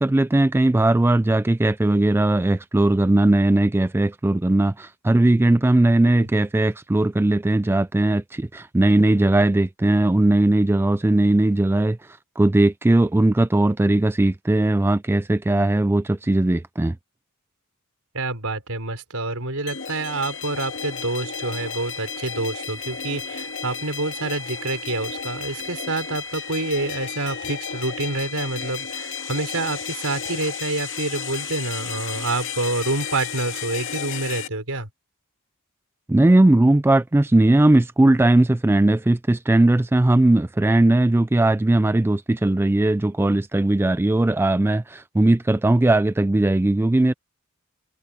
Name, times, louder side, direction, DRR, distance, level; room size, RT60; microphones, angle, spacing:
voice 1, 0.0-17.0 36.1-47.1, right 2 dB, 10° right, 0.3 m, -18 dB
voice 2, 18.1-34.9, right 2 dB, 70° right, 6.0 m, -27 dB
sound 1, 19.7-34.5, left 6 dB, 60° left, 2.2 m, -33 dB
head